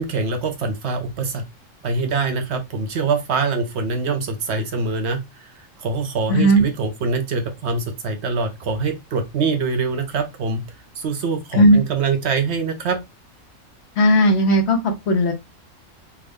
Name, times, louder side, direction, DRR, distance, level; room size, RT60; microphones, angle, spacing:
voice 1, 0.0-1.4 1.8-10.6 11.0-13.0, right 4 dB, 65° right, 0.8 m, -24 dB
voice 2, 6.3-6.6 11.5-11.8 14.0-15.3, equal, 60° left, 0.9 m, -15 dB
3.5 x 2.1 x 3.4 m
omnidirectional pair, 1.3 m